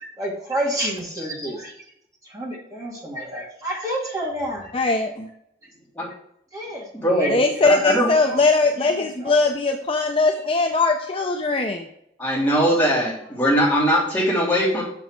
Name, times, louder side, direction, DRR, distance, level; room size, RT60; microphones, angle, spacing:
voice 1, 0.2-1.7 2.2-4.7 6.5-7.8 8.2-8.5 8.8-9.4, right 1 dB, 20° right, -4 dB, 2.6 m, -30 dB
voice 2, 4.7-5.3 7.3-11.9, left 3 dB, 30° left, 3 dB, 0.6 m, -20 dB
voice 3, 6.9-7.4 7.6-8.1 12.2-14.8, equal, 10° left, -7 dB, 3.2 m, -20 dB
6.9 x 6.1 x 4.7 m, 0.75 s
head